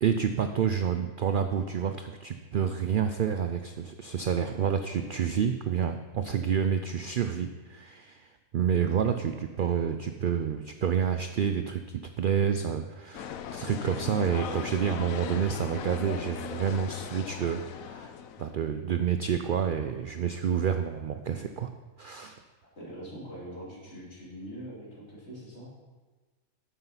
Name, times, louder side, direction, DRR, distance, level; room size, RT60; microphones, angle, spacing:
voice 1, 0.0-18.1 18.4-21.7 22.0-22.4, right 7 dB, 75° right, 8 dB, 0.4 m, -29 dB
sound 1, 13.1-18.5, left 8 dB, 75° left, 1.0 m, -38 dB
voice 2, 22.8-25.7, equal, 50° left, -6 dB, 3.4 m, -43 dB
9.6 x 7.5 x 5.6 m, 1.3 s
omnidirectional pair, 1.5 m